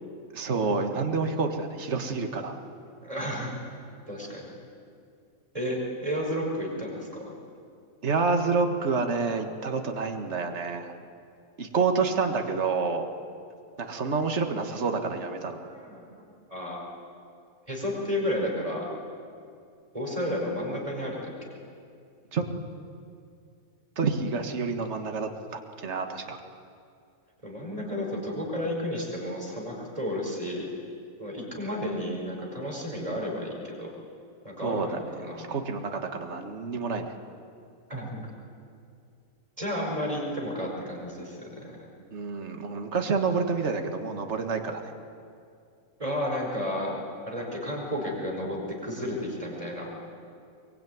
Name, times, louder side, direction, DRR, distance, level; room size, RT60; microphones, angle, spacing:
voice 1, 0.3-2.6 8.0-11.0 11.6-13.1 13.8-15.6 22.3-22.5 24.0-26.4 34.6-37.2 42.1-44.8, right 4 dB, 50° right, 5 dB, 1.9 m, -28 dB
voice 2, 3.0-3.6 4.1-4.4 5.5-7.2 15.5-16.1 16.5-16.8 17.7-18.8 19.9-21.5 27.4-30.7 31.2-33.9 34.4-35.5 37.9-38.3 39.6-41.9 46.0-47.0 47.3-48.6 48.8-49.9, equal, 25° right, -1 dB, 5.6 m, -32 dB
22.5 x 22.5 x 9.4 m, 2.4 s
omnidirectional pair, 1.6 m